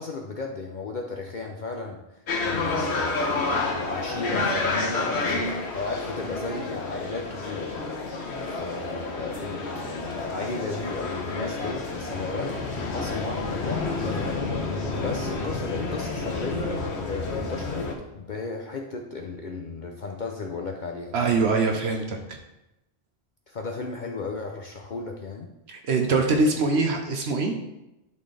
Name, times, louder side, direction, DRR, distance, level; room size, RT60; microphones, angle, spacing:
voice 1, 0.0-7.9 8.1-21.1 23.5-25.5 26.7-26.9, left 3 dB, 50° left, 2 dB, 0.7 m, -35 dB
sound 1, 2.3-17.9, left 3 dB, 80° left, 1.3 m, -30 dB
voice 2, 21.1-22.4 25.7-27.5, right 3 dB, 80° right, 3 dB, 1.1 m, -23 dB
11.0 x 4.3 x 3.3 m, 0.92 s
omnidirectional pair, 1.1 m